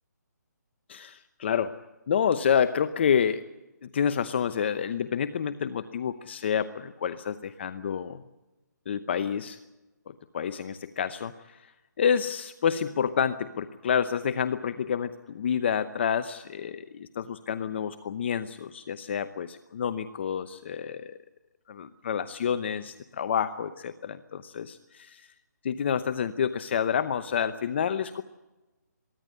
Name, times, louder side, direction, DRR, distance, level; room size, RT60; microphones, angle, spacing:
voice 1, 0.9-1.7 2.1-3.4 3.9-8.2 8.9-9.6 10.1-11.6 12.0-21.2 21.7-25.3 25.6-28.2, left 7 dB, 35° left, 11 dB, 0.9 m, -28 dB
23.0 x 15.5 x 9.7 m, 1.1 s
hypercardioid pair, 165°, 10 cm